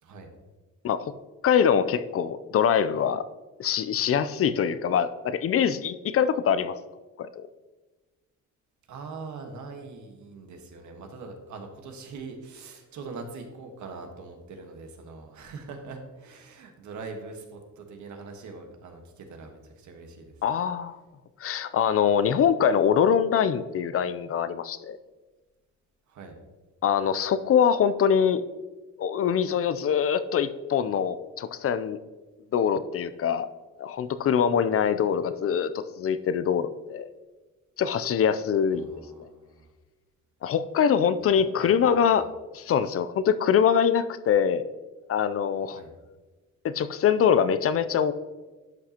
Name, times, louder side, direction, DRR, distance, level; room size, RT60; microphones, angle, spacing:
voice 1, 1.4-3.2 3.6-6.8 7.2-7.4 20.4-21.0 21.4-25.0 26.8-28.4 29.0-32.0 32.5-33.5 33.8-37.1 37.8-38.9 40.4-42.3 42.5-44.7 45.1-45.8 46.6-48.1, left 8 dB, 50° left, 13 dB, 0.5 m, -24 dB
voice 2, 8.9-20.3 26.1-26.4 38.7-39.7 41.3-41.9 42.1-42.2 45.7-45.9, right 4 dB, 75° right, 4 dB, 1.4 m, -42 dB
11.5 x 5.8 x 2.9 m, 1.2 s
cardioid pair, 90°, 30 cm